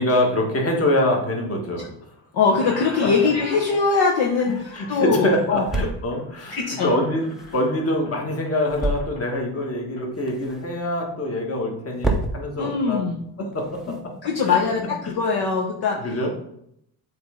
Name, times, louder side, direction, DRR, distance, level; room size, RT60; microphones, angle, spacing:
voice 1, 0.0-1.9 4.4-7.3 7.5-13.1 13.4-14.1 14.4-14.6 15.0-15.1 15.9-16.3, left 1 dB, 30° left, 0 dB, 1.6 m, -25 dB
Squeak, 1.6-2.2 2.5-10.1, left 1 dB, 70° left, 1.7 m, -44 dB
voice 2, 2.3-5.6 6.5-6.9 12.6-13.2 13.9-14.0 14.2-16.0, left 5 dB, 50° left, 0 dB, 0.9 m, -22 dB
sound 1, 4.0-14.7, right 2 dB, ahead, 0.6 m, -33 dB
7.7 x 3.3 x 3.7 m, 0.73 s
cardioid pair, 120°, 49 cm